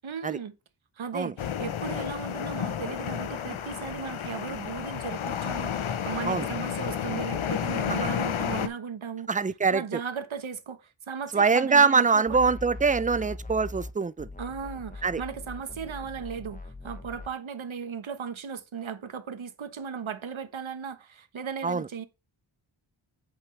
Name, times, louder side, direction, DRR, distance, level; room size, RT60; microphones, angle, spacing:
voice 1, 0.0-0.5 1.0-9.3 9.7-12.5 14.4-22.0, right 6 dB, 70° right, 1.2 m, -36 dB
sound 1, 1.4-8.7, left 8 dB, 75° left, 0.8 m, -31 dB
voice 2, 9.3-9.8 11.3-14.3 15.0-15.2 21.6-21.9, right 5 dB, 20° right, 0.4 m, -23 dB
sound 2, 12.3-13.9 14.2-17.3, left 2 dB, 15° left, 1.0 m, -41 dB
8.1 x 6.0 x 3.2 m
wide cardioid pair, 100°, 49 cm